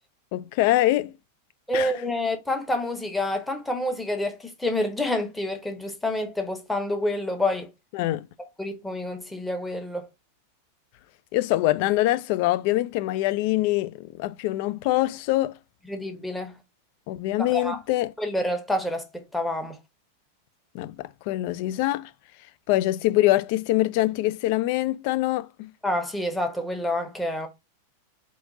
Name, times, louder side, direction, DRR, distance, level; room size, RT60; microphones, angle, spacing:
voice 1, 0.3-1.1 1.7-1.9 7.9-8.3 11.3-15.6 17.1-18.1 20.7-22.1 22.7-25.7, left 16 dB, 45° left, 0.3 m, -24 dB
voice 2, 1.7-7.7 8.6-10.1 15.9-16.6 17.4-17.8 18.2-19.8 25.8-27.5, left 1 dB, 5° left, 0.9 m, -28 dB
3.8 x 2.6 x 3.7 m
figure-of-eight pair, 90°, 0 cm